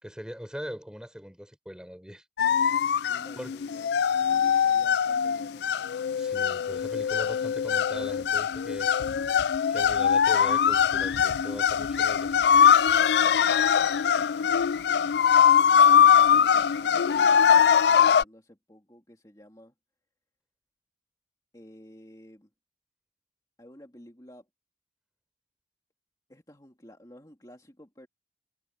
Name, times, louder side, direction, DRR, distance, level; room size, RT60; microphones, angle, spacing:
voice 1, 0.0-2.2 3.4-3.5 6.1-9.0 9.7-12.4, equal, 5° right, 6.6 m, -41 dB
sound 1, 2.4-18.2, left 8 dB, 60° left, 0.3 m, -22 dB
voice 2, 3.1-5.7 15.8-19.8 21.5-22.5 23.6-24.5 26.3-28.1, equal, 20° left, 2.6 m, -52 dB
sound 2, 10.3-18.0, right 3 dB, 85° right, 6.5 m, -52 dB
head